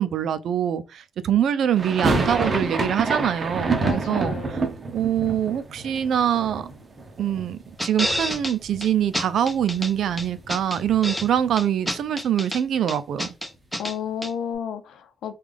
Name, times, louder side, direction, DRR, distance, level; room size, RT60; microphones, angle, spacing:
voice 1, 0.0-4.4 4.9-6.7 7.2-13.3, right 9 dB, 70° right, 0.4 m, -24 dB
sound 1, 1.8-7.7 8.0-8.8 9.1-9.2 9.4-11.6, right 3 dB, 35° right, 0.7 m, -28 dB
voice 2, 3.8-4.7 13.7-15.3, left 8 dB, 80° left, 0.6 m, -32 dB
sound 2, 7.8-8.5 8.8-8.9 9.1-9.9 10.2-11.3 11.6-12.6 12.9-13.9 14.2-14.3, equal, 5° left, 0.8 m, -28 dB
3.5 x 2.3 x 3.3 m
cardioid pair, 115°, 0 cm